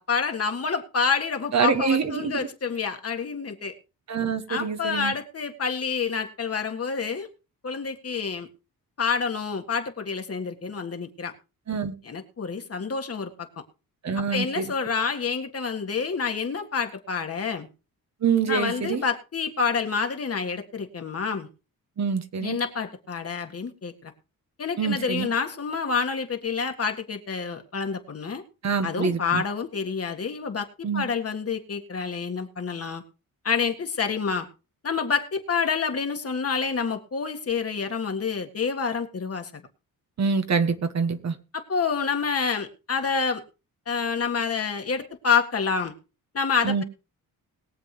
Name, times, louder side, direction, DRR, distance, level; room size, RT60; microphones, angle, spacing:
voice 1, 0.0-3.7 4.5-7.3 7.6-8.5 9.0-11.3 12.0-13.5 14.3-17.7 18.5-21.5 22.4-24.1 24.6-28.4 28.8-33.0 33.4-34.5 34.8-39.6 41.5-43.4 43.9-45.9 46.3-46.8, left 5 dB, 40° left, 1.8 m, -28 dB
voice 2, 1.5-2.3 4.1-5.1 11.7-11.9 14.0-14.7 18.2-19.0 22.0-22.6 24.8-25.3 28.6-29.4 30.8-31.0 40.2-41.3 46.6-46.8, right 6 dB, 50° right, 1.4 m, -25 dB
21.5 x 7.7 x 3.3 m
cardioid pair, 100°, 36 cm